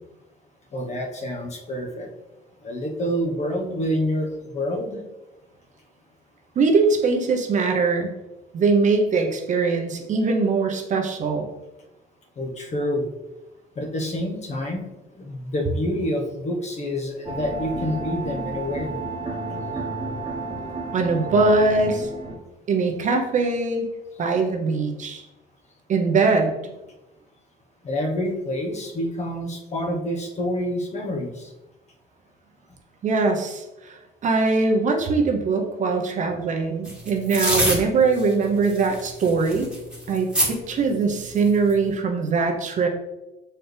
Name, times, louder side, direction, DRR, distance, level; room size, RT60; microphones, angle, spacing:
voice 1, 0.7-2.1 2.6-5.0 12.4-13.1 13.7-14.9 15.1-19.0 27.8-31.5, equal, 40° left, 1 dB, 1.2 m, -27 dB
voice 2, 6.6-8.1 8.5-11.5 20.9-22.1 22.7-23.9 24.2-25.2 25.9-26.7 33.0-34.0 34.2-39.7 40.1-42.9, right 4 dB, 45° right, 3 dB, 0.9 m, -22 dB
sound 1, 17.2-22.4, right 2 dB, 25° right, 1.3 m, -32 dB
sound 2, 36.8-37.8 38.2-38.3 38.6-40.5 41.3-41.7, right 1 dB, 5° right, 1.6 m, -25 dB
6.2 x 4.5 x 3.4 m, 1.0 s
cardioid pair, 110°, 17 cm